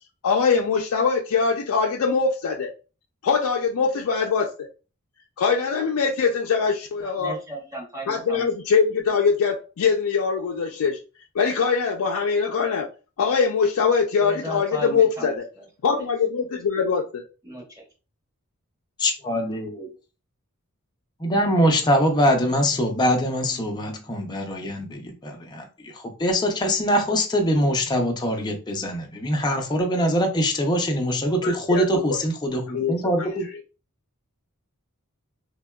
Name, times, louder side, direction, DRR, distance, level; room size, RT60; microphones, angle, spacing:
voice 1, 0.2-2.7 3.2-4.5 5.4-7.4 8.1-11.0 11.3-12.9 13.2-15.4 15.8-17.2 31.4-31.8 32.7-33.5, left 5 dB, 75° left, 0.4 m, -22 dB
voice 2, 7.0-8.5 14.2-15.7 16.0-16.1 17.4-17.8, right 1 dB, 15° right, 0.8 m, -36 dB
voice 3, 19.0-19.9 21.2-33.5, equal, 20° left, 0.5 m, -23 dB
3.4 x 2.2 x 2.2 m
head